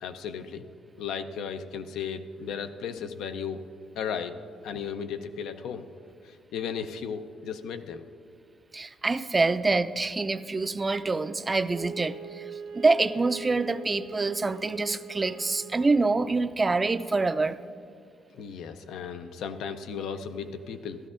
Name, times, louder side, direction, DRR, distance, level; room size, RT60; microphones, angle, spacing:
voice 1, 0.0-0.7 1.0-3.7 4.0-4.4 4.6-5.9 6.2-8.0 18.3-21.0, left 7 dB, 85° left, 9 dB, 0.6 m, -35 dB
voice 2, 8.7-12.5 12.7-17.6, right 3 dB, 25° right, 12 dB, 0.4 m, -26 dB
Wind instrument woodwind instrument, 11.7-16.2, right 5 dB, 90° right, 1.0 m, -42 dB
15.0 x 12.5 x 2.5 m, 2.2 s
cardioid pair, 90°, 0 cm